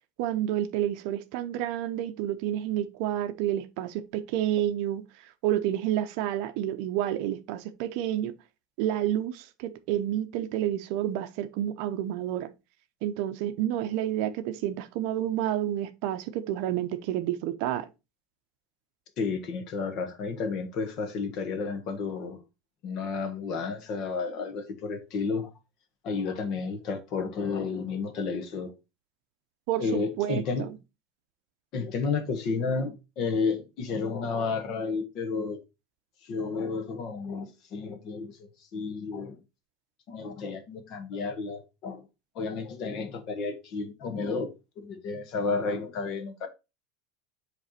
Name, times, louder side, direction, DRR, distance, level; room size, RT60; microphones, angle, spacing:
voice 1, 0.2-8.4 8.8-12.5 13.0-17.9 29.7-30.7, right 12 dB, 60° right, 0.7 m, -29 dB
voice 2, 19.2-22.4 22.8-25.5 26.0-28.7 29.8-30.7 31.7-35.6 36.2-38.4 38.7-39.4 40.1-42.0 42.3-44.5 44.8-46.5, left 4 dB, 45° left, 1.4 m, -31 dB
7.8 x 3.4 x 4.2 m
supercardioid pair, 155°, 0 cm